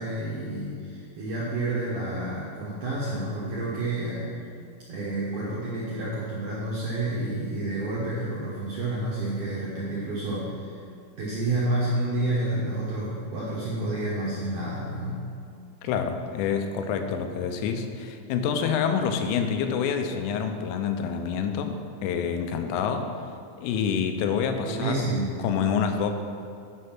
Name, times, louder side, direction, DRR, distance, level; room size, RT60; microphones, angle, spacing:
voice 1, 0.0-4.3 4.9-10.8 11.2-15.2 24.6-25.3, right 2 dB, 70° right, -8 dB, 1.9 m, -29 dB
voice 2, 15.8-23.1 23.6-25.1 25.4-26.1, left 7 dB, 90° left, 6 dB, 3.3 m, -27 dB
9.6 x 5.7 x 5.9 m, 2.4 s
omnidirectional pair, 5.6 m